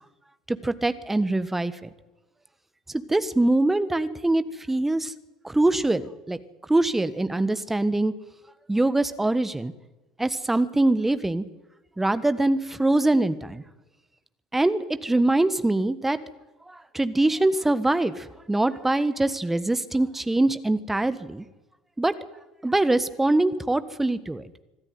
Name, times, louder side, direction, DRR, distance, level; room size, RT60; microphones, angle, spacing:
voice 1, 0.5-1.9 3.1-5.1 5.4-6.4 6.7-8.1 8.7-9.7 10.2-11.4 12.0-13.6 14.5-16.2 16.7-21.4 22.0-22.1 22.6-24.4, right 2 dB, 10° right, 13 dB, 1.4 m, -23 dB
25.5 x 13.0 x 9.4 m, 1.0 s
figure-of-eight pair, 70°, 3 cm